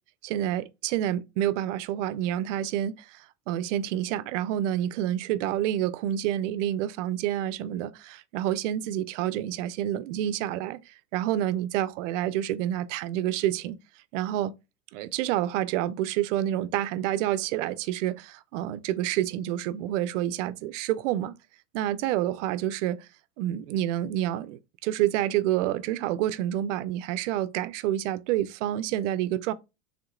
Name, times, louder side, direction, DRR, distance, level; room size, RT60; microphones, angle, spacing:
voice 1, 0.2-13.8 14.1-14.5 14.9-21.3 21.7-23.1 23.4-29.5, right 12 dB, 70° right, 0.5 m, -28 dB
3.6 x 2.8 x 2.4 m
supercardioid pair, 120°, 38 cm